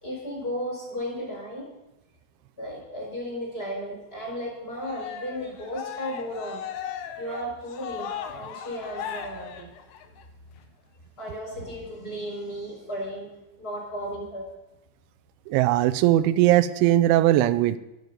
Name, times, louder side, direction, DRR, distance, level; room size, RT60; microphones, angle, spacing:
voice 1, 0.0-1.7 2.6-6.6 7.2-9.7 11.2-13.3 13.6-14.5, equal, 20° left, -1 dB, 4.3 m, -34 dB
Cheering, 4.7-10.2, left 8 dB, 80° left, 2.0 m, -37 dB
voice 2, 15.5-17.8, right 14 dB, 85° right, 13 dB, 3.0 m, -19 dB
14.5 x 12.5 x 5.3 m, 0.95 s
omnidirectional pair, 5.4 m